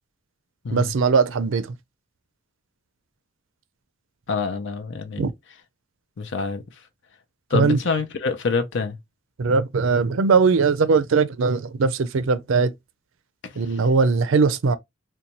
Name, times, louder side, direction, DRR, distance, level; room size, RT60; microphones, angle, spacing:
voice 1, 0.7-1.8 5.2-5.3 7.5-7.8 9.4-12.7 13.6-14.8, right 4 dB, 65° right, 0.5 m, -20 dB
voice 2, 4.3-5.3 6.2-6.6 7.5-9.0 13.4-13.5, left 4 dB, 60° left, 0.5 m, -26 dB
3.9 x 2.3 x 2.9 m
head